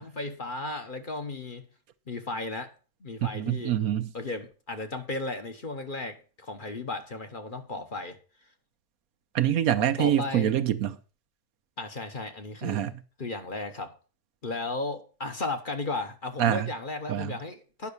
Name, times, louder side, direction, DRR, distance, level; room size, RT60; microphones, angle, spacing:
voice 1, 0.0-1.6 2.1-2.7 3.0-3.8 4.1-8.2 10.0-10.5 11.8-12.9 13.2-13.9 14.4-17.9, left 2 dB, 40° left, 1.1 m, -35 dB
voice 2, 3.2-4.1 9.3-11.0 12.6-13.0 16.4-16.7 17.1-17.4, right 11 dB, 75° right, 1.2 m, -25 dB
9.6 x 5.9 x 6.7 m
omnidirectional pair, 1.5 m